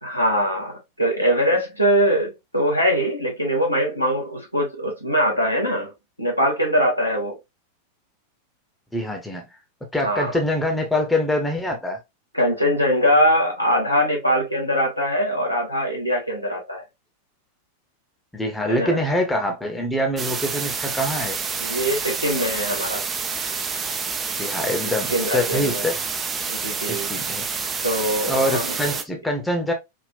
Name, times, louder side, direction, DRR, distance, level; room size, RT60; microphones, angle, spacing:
voice 1, 0.0-0.7 1.0-5.9 6.2-7.3 10.0-10.3 12.3-16.8 18.7-19.0 21.6-23.0 25.1-25.8 26.5-27.1 27.8-28.8, equal, 90° left, 1.2 m, -22 dB
voice 2, 8.9-9.4 9.9-12.0 18.3-21.4 24.4-26.0 26.9-27.5 28.3-29.7, left 1 dB, 5° left, 0.8 m, -24 dB
sound 1, 20.2-29.0, right 5 dB, 20° right, 0.4 m, -28 dB
3.6 x 2.4 x 2.3 m
figure-of-eight pair, 90°, 0 cm